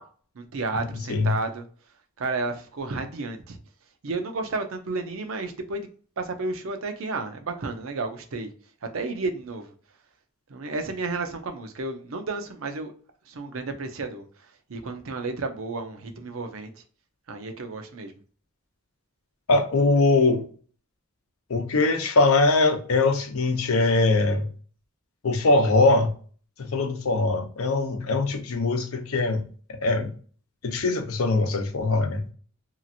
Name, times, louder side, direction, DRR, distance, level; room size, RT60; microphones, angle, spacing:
voice 1, 0.4-1.7 2.2-3.6 4.0-5.9 6.2-8.5 8.9-9.7 10.5-12.9 13.3-16.8 17.3-18.1, right 3 dB, 70° right, 0.6 m, -32 dB
voice 2, 19.5-20.4 21.5-24.5 25.2-26.1 26.6-29.4 29.7-30.1 30.6-32.2, left 3 dB, 85° left, 0.6 m, -22 dB
2.8 x 2.5 x 2.6 m
head